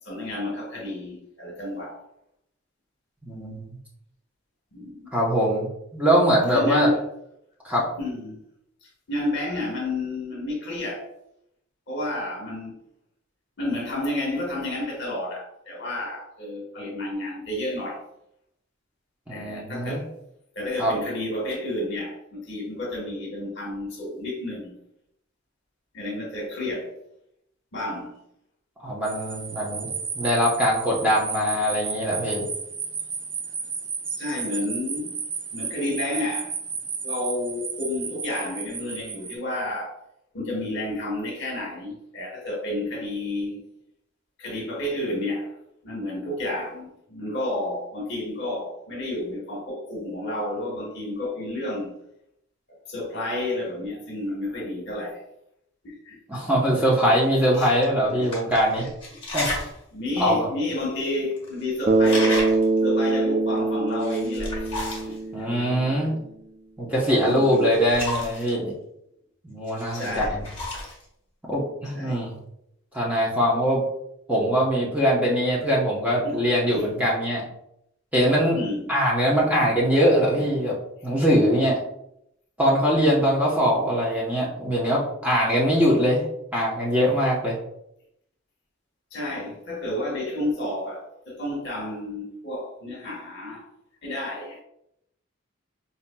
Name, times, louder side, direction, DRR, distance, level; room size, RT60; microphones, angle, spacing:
voice 1, 0.0-2.0 4.7-5.1 6.5-7.0 7.9-8.4 8.8-11.1 11.9-12.8 13.6-18.0 19.3-20.1 20.5-24.7 25.9-26.9 27.7-28.2 34.2-35.1 35.5-36.5 37.0-39.9 40.3-43.6 44.4-45.5 45.8-51.9 52.9-55.2 55.8-56.2 57.5-57.7 58.1-58.3 59.9-64.7 65.1-65.2 65.6-65.7 67.2-67.7 69.9-70.4 71.9-72.2 76.2-76.4 76.7-76.8 78.5-79.0 80.4-80.5 89.1-93.6 94.0-94.6, left 1 dB, 55° left, 1.2 m, -31 dB
voice 2, 3.3-3.7 5.1-5.7 5.9-6.9 7.6-7.9 19.3-20.0 20.8-20.9 28.8-29.9 30.1-32.4 56.3-58.9 59.3-59.5 60.2-60.5 65.3-66.1 66.8-68.7 69.4-70.4 71.5-72.4 72.9-73.8 74.3-77.5 78.1-78.6 78.9-80.7 81.0-81.8 82.6-86.2 86.5-87.6, equal, 5° right, 0.8 m, -22 dB
sound 1, 29.0-39.3, right 5 dB, 60° right, 0.8 m, -33 dB
sound 2, 56.9-57.0 57.7-57.8 58.2-59.8 60.2-60.3 61.0-61.1 61.3-61.6 61.9-62.8 63.9-65.2 67.0-68.5 69.7-71.0, left 2 dB, 25° left, 1.4 m, -33 dB
Bass guitar, 61.9-66.1, right 3 dB, 35° right, 0.3 m, -23 dB
5.6 x 2.8 x 2.2 m
head